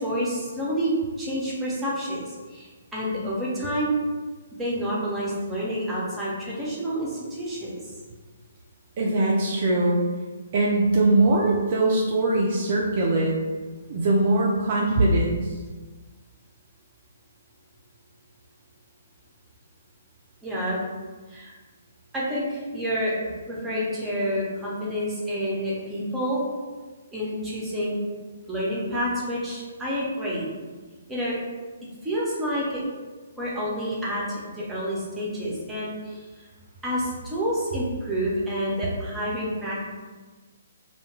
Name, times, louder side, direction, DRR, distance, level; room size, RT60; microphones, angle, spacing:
voice 1, 0.0-4.0 4.6-7.7 20.4-20.8 21.3-21.5 22.1-26.4 27.1-28.0 28.5-30.5 31.1-31.4 32.0-32.8 33.4-36.2 36.8-39.8, equal, 10° right, -6 dB, 0.7 m, -28 dB
voice 2, 9.0-10.0 10.5-13.4 13.9-15.6, right 2 dB, 40° right, -3 dB, 0.3 m, -21 dB
2.2 x 2.1 x 3.0 m, 1.3 s
figure-of-eight pair, 130°, 0 cm